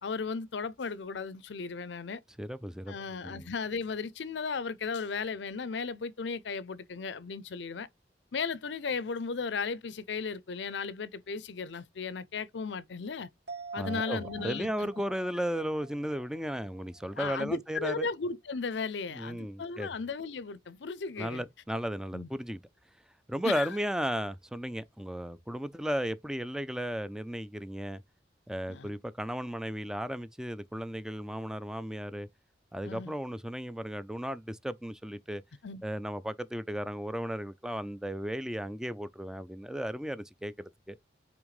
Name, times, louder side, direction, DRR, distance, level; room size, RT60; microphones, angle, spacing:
voice 1, 0.0-2.2 2.9-7.9 8.3-13.3 13.7-14.9 17.2-21.4 22.1-22.3 23.4-23.7 28.7-28.9 32.8-33.1 35.6-35.8, left 5 dB, 80° left, 0.6 m, -35 dB
voice 2, 2.4-2.9 3.2-3.5 13.8-18.1 19.1-19.9 21.2-22.6 23.3-28.0 28.5-32.3 32.7-35.4 35.8-41.0, equal, 5° right, 0.4 m, -35 dB
sound 1, 13.5-17.2 17.5-17.6, right 4 dB, 75° right, 2.7 m, -45 dB
8.6 x 3.6 x 3.2 m
head